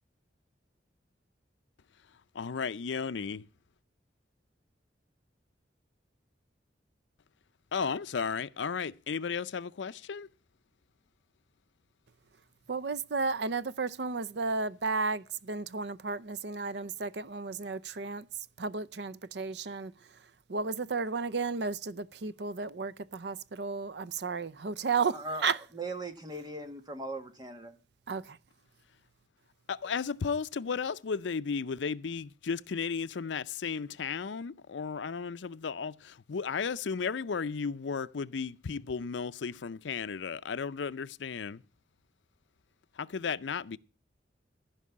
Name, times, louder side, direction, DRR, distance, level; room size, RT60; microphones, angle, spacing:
voice 1, 2.3-3.4 7.7-10.3 29.7-41.6 43.0-43.8, left 5 dB, 80° left, 0.5 m, -34 dB
voice 2, 12.7-18.3 18.6-19.9 20.5-25.6 28.1-28.4, right 4 dB, 65° right, 0.6 m, -33 dB
voice 3, 25.0-27.7, right 2 dB, 20° right, 1.6 m, -39 dB
15.0 x 5.4 x 8.5 m
head